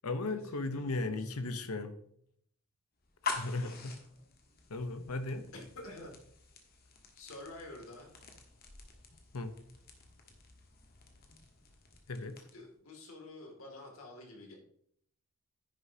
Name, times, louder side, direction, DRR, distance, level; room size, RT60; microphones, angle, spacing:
voice 1, 0.0-1.9 3.2-3.8 4.7-5.4 9.3-9.6 12.1-12.5, left 2 dB, 90° left, 9 dB, 0.9 m, -36 dB
voice 2, 0.7-1.5 3.4-3.8 5.5-6.2 7.1-8.1 12.5-14.5, left 2 dB, 75° left, 0 dB, 2.6 m, -49 dB
sound 1, 3.0-12.7, left 4 dB, 45° left, 1.4 m, -46 dB
10.0 x 9.8 x 2.9 m, 0.66 s
head